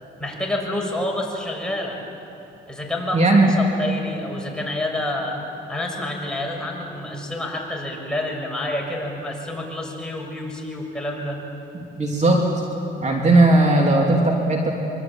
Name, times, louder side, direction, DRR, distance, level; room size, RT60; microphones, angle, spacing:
voice 1, 0.2-2.0 2.7-5.4 5.7-11.4, left 1 dB, 5° left, -1 dB, 6.4 m, -28 dB
voice 2, 3.1-3.5 12.0-12.5 13.0-14.7, right 2 dB, 35° right, 0 dB, 3.0 m, -17 dB
25.0 x 24.0 x 9.0 m, 2.9 s
cardioid pair, 90°, 20 cm